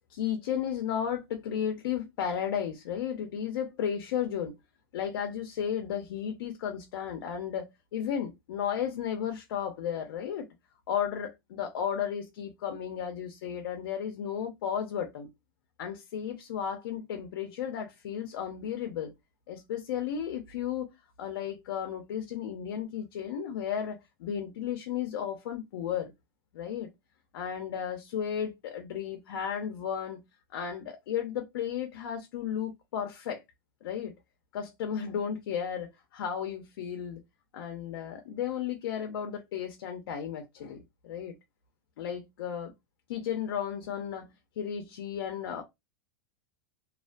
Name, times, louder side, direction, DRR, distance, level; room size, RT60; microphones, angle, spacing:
voice 1, 0.1-4.6 4.9-10.5 10.9-15.3 15.8-19.1 19.5-20.9 21.2-26.1 26.5-26.9 27.3-30.2 30.5-33.4 33.8-34.1 34.5-37.2 37.5-41.3 42.0-42.7 43.1-45.6, left 8 dB, 75° left, 0.6 m, -34 dB
2.3 x 2.2 x 2.5 m
supercardioid pair, 140°, 12 cm